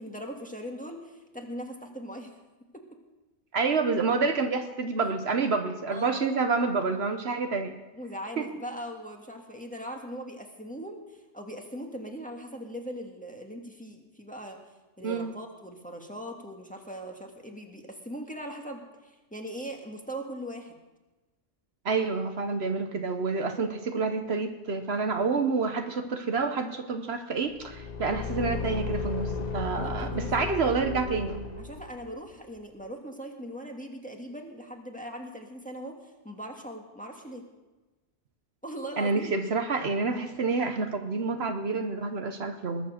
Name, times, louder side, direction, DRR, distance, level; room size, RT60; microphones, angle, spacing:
voice 1, 0.0-2.3 2.7-2.8 5.9-6.3 7.9-14.6 15.0-20.8 29.7-30.5 31.6-36.0 36.2-37.4 38.6-39.5, equal, 5° left, 1 dB, 1.6 m, -40 dB
voice 2, 3.5-7.7 8.4-8.5 15.0-15.4 21.8-31.4 39.0-42.9, right 4 dB, 60° right, 7 dB, 1.2 m, -28 dB
Car / Engine, 27.6-32.1, left 4 dB, 40° left, 0.9 m, -34 dB
21.0 x 7.3 x 6.5 m, 1.1 s
omnidirectional pair, 1.2 m